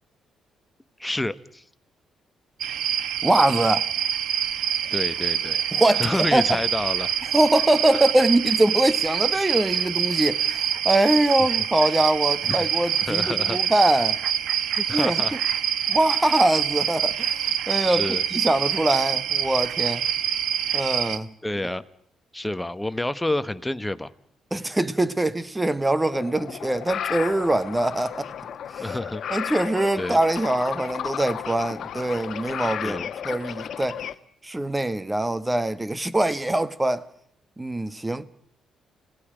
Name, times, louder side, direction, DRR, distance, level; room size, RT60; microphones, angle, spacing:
voice 1, 1.0-1.6 4.9-5.7 6.0-7.1 7.9-8.0 12.4-12.7 13.1-13.6 14.8-15.4 17.8-18.2 21.4-21.8 22.3-24.1 28.8-29.2 30.0-30.2 32.6-33.1, left 1 dB, 10° left, 1.1 m, -29 dB
sound 1, 2.6-21.2, right 9 dB, 80° right, 1.0 m, -26 dB
voice 2, 3.2-3.9 5.7-6.6 7.3-14.2 14.9-15.2 15.9-20.0 20.7-21.3 24.5-28.3 28.8-28.9 29.3-34.0 34.4-37.1 37.6-38.2, right 1 dB, 15° right, 1.1 m, -23 dB
sound 2, 26.1-34.1, left 9 dB, 65° left, 1.1 m, -33 dB
29.5 x 17.5 x 5.0 m
cardioid pair, 90°, 0 cm